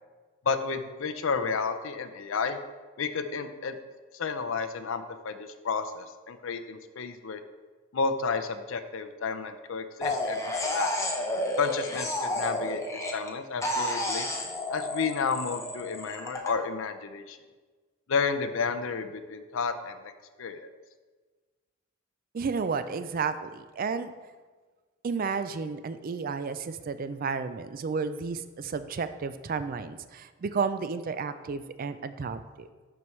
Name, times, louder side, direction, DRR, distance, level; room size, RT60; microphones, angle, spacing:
voice 1, 0.5-2.6 3.0-3.8 4.1-7.4 7.9-10.9 11.6-14.3 14.7-17.4 18.1-20.1 20.4-20.7, left 5 dB, 65° left, 9 dB, 0.5 m, -31 dB
sound 1, 10.0-13.3 13.6-16.5, left 1 dB, 15° left, 0.7 m, -31 dB
voice 2, 22.3-24.1 25.0-32.7, right 5 dB, 40° right, 11 dB, 0.3 m, -32 dB
11.0 x 4.6 x 3.2 m, 1.4 s
head